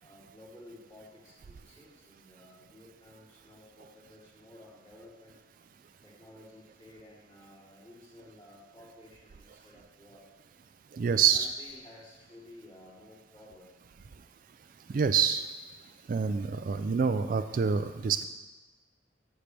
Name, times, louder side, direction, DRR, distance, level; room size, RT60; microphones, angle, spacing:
voice 1, 0.0-5.4 6.0-10.3 11.1-13.7, left 1 dB, 25° left, -8 dB, 3.2 m, -53 dB
voice 2, 10.9-11.5 14.9-15.5 16.1-18.3, right 6 dB, 45° right, 10 dB, 0.3 m, -26 dB
12.0 x 7.3 x 3.3 m, 1.2 s
head